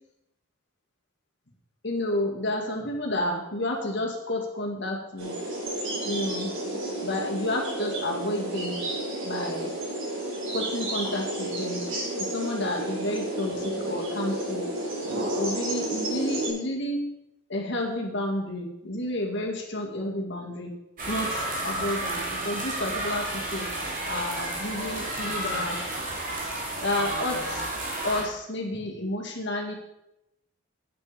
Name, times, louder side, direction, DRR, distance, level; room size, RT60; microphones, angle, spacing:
voice 1, 1.8-5.4 6.0-6.5 7.0-8.8 9.2-9.7 10.5-11.8 12.2-14.6 15.3-17.0 17.5-20.7 21.1-23.7 24.1-25.8 26.8-27.6 28.0-29.7, left 1 dB, 55° left, 1 dB, 2.2 m, -30 dB
sound 1, 5.2-16.5, right 1 dB, 65° right, 4.8 m, -31 dB
sound 2, 21.0-28.2, right 1 dB, 40° right, 2.9 m, -31 dB
9.2 x 8.4 x 6.8 m, 0.88 s
head